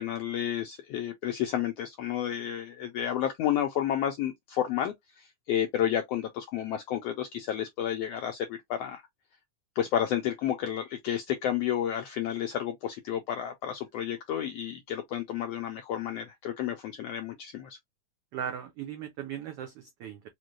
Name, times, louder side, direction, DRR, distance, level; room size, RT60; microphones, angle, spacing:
voice 1, 0.0-9.0 9.8-17.8, left 10 dB, 85° left, 1.4 m, -31 dB
voice 2, 18.3-20.3, right 9 dB, 80° right, 1.3 m, -38 dB
5.2 x 2.2 x 3.0 m
omnidirectional pair, 3.5 m